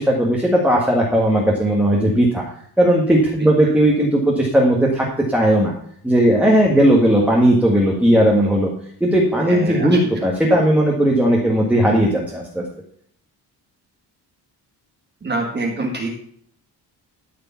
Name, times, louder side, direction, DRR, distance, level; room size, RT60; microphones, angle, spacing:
voice 1, 0.0-2.4 2.8-5.7 6.0-8.7 9.0-12.6, right 1 dB, 5° right, -2 dB, 1.7 m, -16 dB
voice 2, 9.3-10.0 10.5-10.6 15.2-16.1, right 2 dB, 25° right, 0 dB, 1.6 m, -25 dB
13.5 x 5.2 x 5.7 m, 0.63 s
wide cardioid pair, 165°, 40 cm